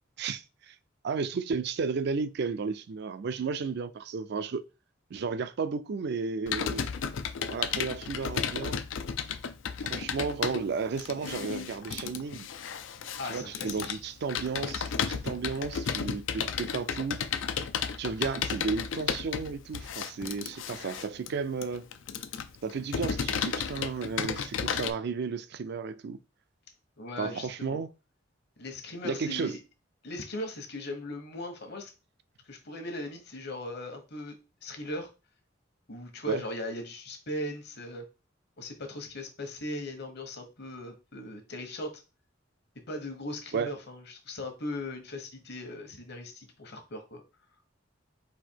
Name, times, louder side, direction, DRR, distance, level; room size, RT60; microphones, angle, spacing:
voice 1, 0.2-0.8 1.0-4.6 5.1-6.9 7.4-8.8 9.8-12.5 13.2-17.3 18.0-21.9 22.6-26.2 27.2-27.9 29.0-29.5 36.3-36.4 43.5-43.7, right 5 dB, 60° right, 0.4 m, -33 dB
Computer keyboard, 6.5-24.9, left 7 dB, 90° left, 0.4 m, -33 dB
voice 2, 13.2-14.0 27.0-27.8 28.6-29.6 30.0-31.9 32.5-34.4 34.6-35.1 35.9-38.0 38.6-42.0 42.9-47.2, left 1 dB, 60° left, 1.1 m, -38 dB
4.2 x 2.7 x 4.5 m
head